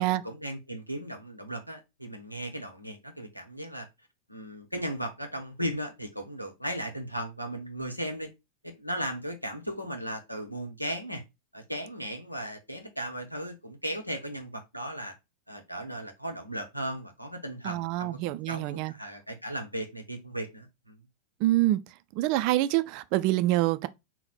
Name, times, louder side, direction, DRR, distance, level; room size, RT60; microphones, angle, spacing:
voice 1, 0.0-3.9 4.3-8.3 8.6-11.2 11.5-15.1 15.5-18.2 18.5-21.0, equal, 90° left, 0.8 m, -36 dB
voice 2, 17.6-18.9 21.4-21.8 22.1-23.9, right 16 dB, 45° right, 0.3 m, -26 dB
4.1 x 2.1 x 4.1 m
figure-of-eight pair, 90°, 0 cm